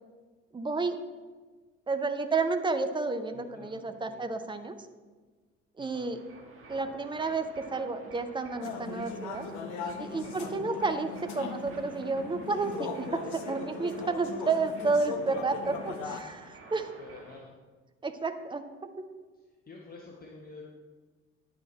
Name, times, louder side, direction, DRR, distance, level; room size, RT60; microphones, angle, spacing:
voice 1, 0.5-1.0 1.9-4.7 5.8-6.2 6.7-9.5 10.0-16.9 18.0-19.1, right 3 dB, 15° right, 7 dB, 0.6 m, -31 dB
voice 2, 3.3-4.3 5.8-6.1 10.2-10.5 15.2-15.6 17.0-17.5 19.7-20.7, left 3 dB, 25° left, -2 dB, 1.3 m, -49 dB
sound 1, 6.1-17.4, right 2 dB, 35° right, 1.6 m, -50 dB
sound 2, 8.6-16.2, left 5 dB, 55° left, 0.9 m, -39 dB
9.8 x 6.1 x 4.1 m, 1.4 s
figure-of-eight pair, 55°, 36 cm